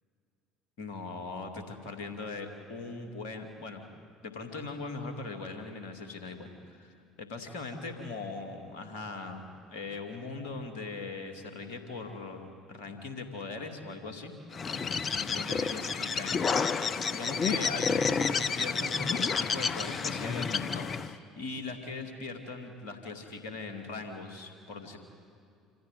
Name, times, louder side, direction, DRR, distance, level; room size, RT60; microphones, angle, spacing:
voice 1, 0.8-3.8 4.2-14.3 15.3-16.8 17.1-25.0, left 3 dB, 65° left, 5 dB, 2.4 m, -40 dB
Bird, 14.5-21.1, left 5 dB, 35° left, 0.9 m, -30 dB
26.0 x 15.0 x 9.2 m, 2.4 s
figure-of-eight pair, 60°, 0 cm